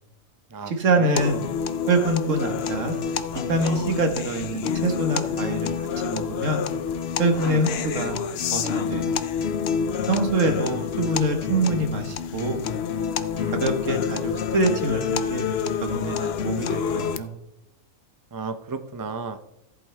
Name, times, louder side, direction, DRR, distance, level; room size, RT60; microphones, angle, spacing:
voice 1, 0.7-1.4 1.9-2.9 3.5-6.6 7.2-8.1 8.5-9.1 10.1-12.6 13.6-15.5 15.8-17.3, right 2 dB, 65° right, 6 dB, 1.7 m, -25 dB
sound 1, 1.2-17.2, left 7 dB, 60° left, 0.7 m, -28 dB
voice 2, 18.3-19.4, right 5 dB, 35° right, 9 dB, 0.3 m, -32 dB
14.5 x 8.3 x 3.3 m, 0.83 s
omnidirectional pair, 1.4 m